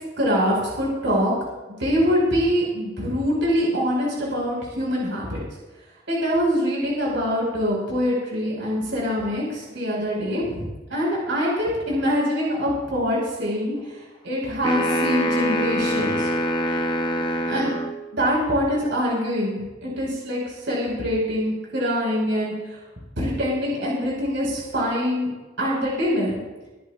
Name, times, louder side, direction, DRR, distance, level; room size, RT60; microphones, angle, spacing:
voice 1, 0.2-1.3 1.8-5.4 6.1-13.8 14.2-16.3 17.5-17.7 18.1-22.5 23.2-25.3 25.6-26.4, equal, 70° right, -4 dB, 5.2 m, -24 dB
sound 1, 14.6-18.0, equal, 25° left, 1.0 m, -24 dB
23.0 x 13.5 x 2.5 m, 1.1 s
head